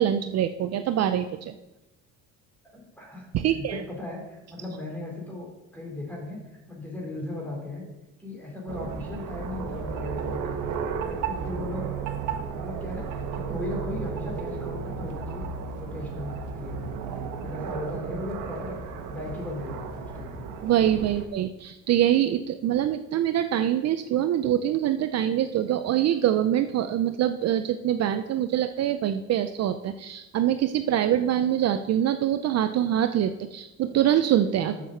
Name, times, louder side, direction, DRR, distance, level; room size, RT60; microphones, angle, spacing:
voice 1, 0.0-1.6 3.3-3.8 20.6-34.7, right 11 dB, 50° right, 9 dB, 0.5 m, -24 dB
voice 2, 2.6-7.8 8.2-10.6 11.0-12.0 12.3-15.5 15.7-17.0 17.4-18.8 19.1-20.5 34.6-34.9, left 2 dB, 5° left, -1 dB, 2.9 m, -37 dB
sound 1, 8.7-21.3, right 6 dB, 70° right, 1.3 m, -33 dB
7.4 x 6.5 x 6.8 m, 0.98 s
cardioid pair, 145°, 33 cm